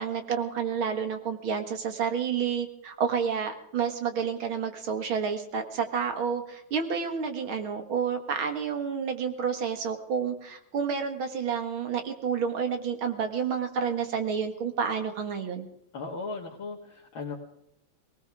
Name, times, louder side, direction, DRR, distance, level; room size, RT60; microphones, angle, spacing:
voice 1, 0.0-15.7, right 6 dB, 80° right, 6 dB, 2.6 m, -30 dB
voice 2, 15.9-17.4, left 3 dB, 80° left, -3 dB, 2.7 m, -37 dB
20.5 x 19.0 x 3.6 m, 0.78 s
omnidirectional pair, 2.2 m